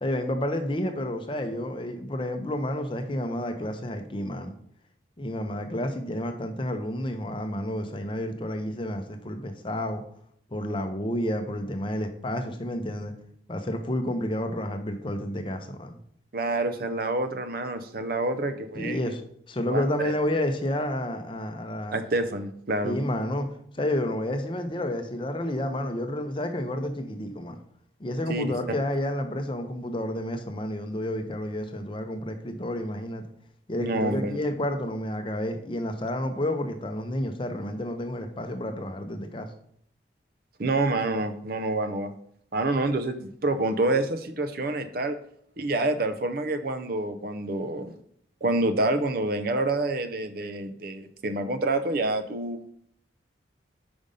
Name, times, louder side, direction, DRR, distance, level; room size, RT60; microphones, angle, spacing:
voice 1, 0.0-4.5 5.2-10.0 10.5-13.1 13.5-16.0 18.8-19.2 19.5-22.0 22.8-23.5 23.7-27.6 28.0-33.2 33.7-39.5, left 1 dB, 25° left, 6 dB, 0.6 m, -30 dB
voice 2, 16.3-19.1 19.6-20.1 21.9-23.0 28.3-28.4 33.8-34.4 40.6-42.1 42.5-45.2 45.6-47.9 48.4-52.6, right 2 dB, 50° right, 9 dB, 0.5 m, -27 dB
5.2 x 5.1 x 5.3 m, 0.67 s
head